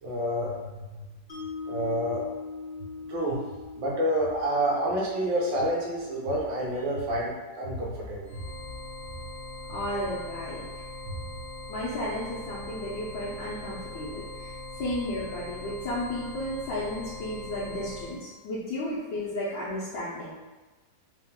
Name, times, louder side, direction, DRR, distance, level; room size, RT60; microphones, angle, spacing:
voice 1, 0.0-1.1 1.7-2.3 3.1-3.4 3.8-8.4 11.1-11.3, equal, 75° right, -3 dB, 1.7 m, -29 dB
Mallet percussion, 1.3-7.5, left 4 dB, 35° left, 1.0 m, -42 dB
sound 1, 8.2-18.2, left 2 dB, 40° right, 1.9 m, -41 dB
voice 2, 9.7-10.8 11.7-20.3, left 1 dB, 80° left, -9 dB, 1.6 m, -33 dB
4.1 x 2.9 x 3.6 m, 1.2 s
omnidirectional pair, 2.0 m